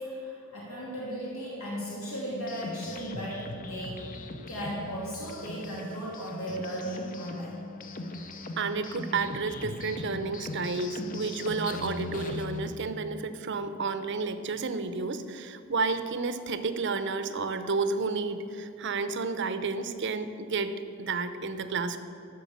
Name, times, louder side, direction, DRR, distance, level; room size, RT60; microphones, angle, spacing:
voice 1, 0.0-4.1 4.5-7.6, equal, 75° left, -6 dB, 2.8 m, -36 dB
sound 1, 2.3-12.7, left 2 dB, 40° left, 0.8 m, -39 dB
voice 2, 8.6-22.0, right 4 dB, 55° right, 10 dB, 0.7 m, -31 dB
12.5 x 6.5 x 8.6 m, 2.8 s
head